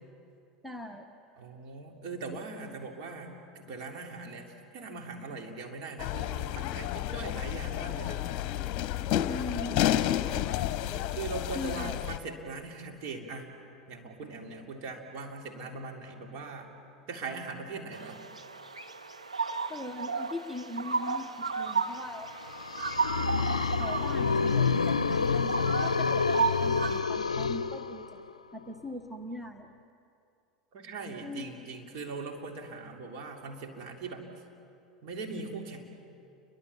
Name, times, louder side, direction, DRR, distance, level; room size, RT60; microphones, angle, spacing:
voice 1, 0.6-1.1 9.2-9.8 11.5-11.9 19.7-22.3 23.8-28.2 28.5-29.7 31.2-31.6, left 2 dB, 5° right, 6 dB, 1.3 m, -40 dB
voice 2, 1.4-8.3 11.1-13.5 13.9-16.7 17.1-18.2 30.7-34.3 35.0-35.8, right 4 dB, 50° right, 2 dB, 3.5 m, -40 dB
sound 1, 6.0-12.2, left 12 dB, 45° left, 0.9 m, -31 dB
sound 2, 17.9-27.0, right 5 dB, 90° right, 1.0 m, -34 dB
sound 3, 22.4-28.3, left 5 dB, 80° left, 0.5 m, -28 dB
30.0 x 23.5 x 7.3 m, 2.6 s
figure-of-eight pair, 80°, 3 cm